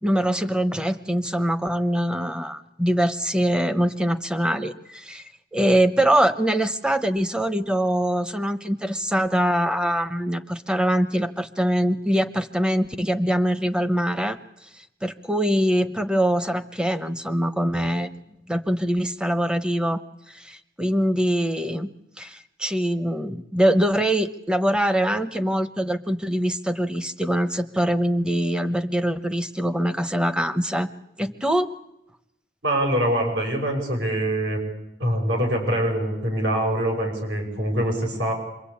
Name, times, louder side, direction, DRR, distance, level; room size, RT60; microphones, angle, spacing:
voice 1, 0.0-5.2 5.5-14.4 14.8-18.1 18.5-20.0 20.3-30.9 31.2-31.7, equal, 5° right, 11 dB, 0.9 m, -23 dB
voice 2, 32.6-34.6 35.0-38.3, right 1 dB, 75° right, 2 dB, 6.5 m, -24 dB
26.0 x 22.5 x 8.6 m, 0.85 s
head